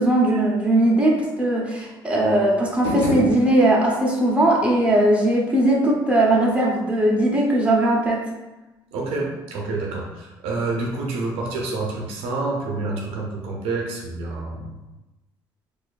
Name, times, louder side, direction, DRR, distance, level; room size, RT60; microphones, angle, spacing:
voice 1, 0.0-8.3, right 1 dB, 10° right, -3 dB, 0.9 m, -19 dB
sound 1, 2.7-4.1, left 3 dB, 75° left, 1.1 m, -28 dB
voice 2, 8.9-14.8, right 3 dB, 80° right, -1 dB, 0.7 m, -28 dB
4.2 x 2.5 x 2.4 m, 1.1 s
supercardioid pair, 85°, 10 cm